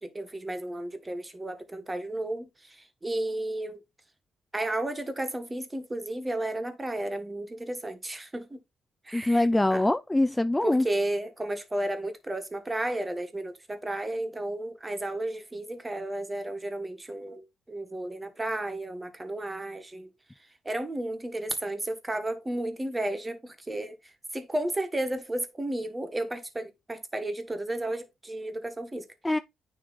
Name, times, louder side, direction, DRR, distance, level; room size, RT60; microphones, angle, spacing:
voice 1, 0.0-3.8 4.5-8.6 9.0-9.8 10.6-20.1 20.6-29.1, right 1 dB, 15° right, 1.5 m, -33 dB
voice 2, 9.1-10.9 29.2-29.4, left 1 dB, 10° left, 0.4 m, -23 dB
9.4 x 3.2 x 4.1 m
cardioid pair, 90°, 0 cm